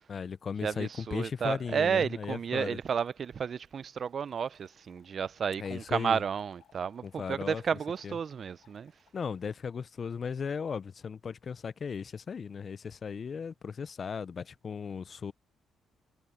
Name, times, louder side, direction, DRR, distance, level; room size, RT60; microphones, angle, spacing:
voice 1, 0.1-2.8 5.6-6.2 7.0-7.6 8.0-8.1 9.1-15.3, left 6 dB, 45° left, 0.5 m, -36 dB
voice 2, 0.6-8.9, right 7 dB, 50° right, 0.4 m, -32 dB
Trickle dribble / Fill (with liquid), 2.2-9.5, left 12 dB, 80° left, 6.2 m, -68 dB
cardioid pair, 90°, 0 cm